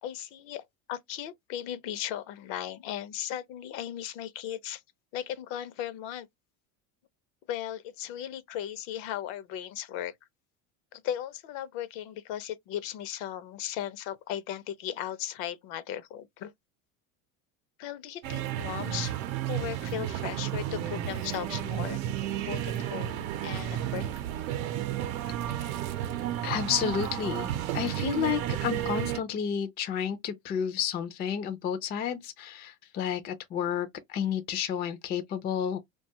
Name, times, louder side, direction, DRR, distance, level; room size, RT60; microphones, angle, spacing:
voice 1, 0.0-4.8 5.1-6.3 7.5-10.1 10.9-16.5 17.8-19.2 19.5-22.0 22.4-24.3, left 11 dB, 65° left, 0.6 m, -37 dB
sound 1, 18.2-29.2, right 11 dB, 80° right, 0.6 m, -32 dB
voice 2, 26.4-27.5 27.7-35.8, left 8 dB, 25° left, 0.3 m, -31 dB
2.5 x 2.3 x 2.7 m
supercardioid pair, 105°, 41 cm